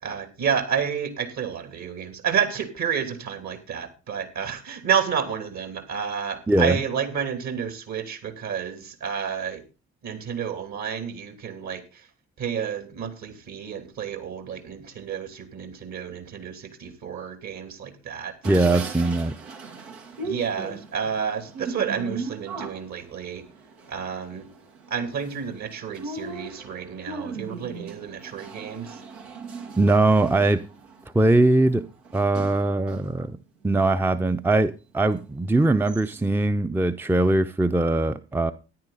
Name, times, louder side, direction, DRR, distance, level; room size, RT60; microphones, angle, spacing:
voice 1, 0.0-9.6 10.0-12.1 12.4-18.8 20.2-23.5 23.9-24.5 24.9-29.0, right 7 dB, 55° right, 2.9 m, -30 dB
voice 2, 6.5-6.8 18.4-19.3 29.8-30.6 31.1-31.9 32.1-33.4 33.6-38.5, right 2 dB, 5° right, 0.7 m, -21 dB
sound 1, 18.4-33.2 33.6-34.6 35.2-35.3 35.6-36.4, right 4 dB, 80° right, 2.0 m, -39 dB
13.5 x 10.5 x 4.0 m
figure-of-eight pair, 45°, 34 cm